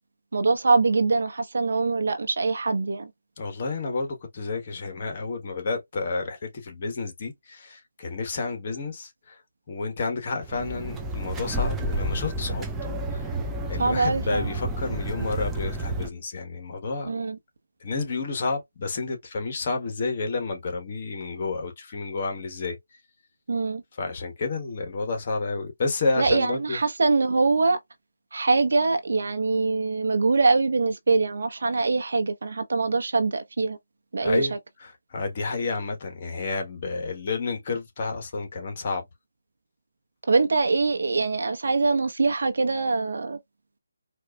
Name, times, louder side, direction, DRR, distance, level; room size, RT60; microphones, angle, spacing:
voice 1, 0.3-3.1 13.8-14.5 17.0-17.4 23.5-23.8 26.2-27.8 28.3-33.8 34.1-34.5 40.3-43.4, right 3 dB, 65° right, 0.9 m, -23 dB
voice 2, 3.4-9.4 9.7-13.3 13.7-17.1 17.8-22.8 24.0-26.8 34.2-34.5 34.8-39.0, left 3 dB, 40° left, 1.3 m, -30 dB
sound 1, 10.4-16.1, right 1 dB, 10° right, 0.5 m, -30 dB
4.4 x 2.5 x 2.3 m
figure-of-eight pair, 160°, 0 cm